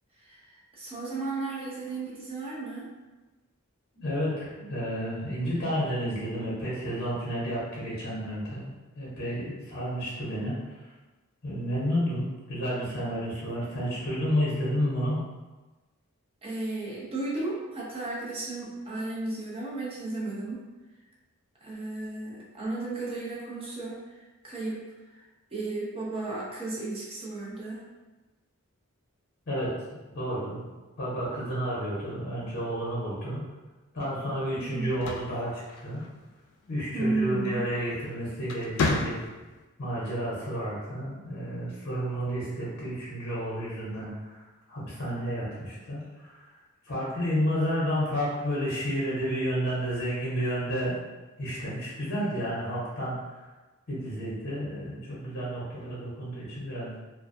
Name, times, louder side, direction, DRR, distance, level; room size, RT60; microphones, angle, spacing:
voice 1, 0.2-2.9 16.4-20.6 21.6-24.0 24.4-24.8 25.5-27.8 34.5-35.0 36.9-37.6, right 2 dB, 25° right, -5 dB, 0.5 m, -34 dB
voice 2, 4.0-10.6 11.4-15.2 29.5-30.7 31.0-33.4 33.9-36.0 36.7-39.2 39.8-44.4 44.7-46.4 46.9-51.0 51.4-53.4 53.9-57.0, equal, 50° left, -7 dB, 0.7 m, -31 dB
sound 1, 34.8-36.3 37.8-38.0 38.4-39.6, left 3 dB, 85° left, 0.3 m, -31 dB
2.4 x 2.2 x 2.5 m, 1.2 s
head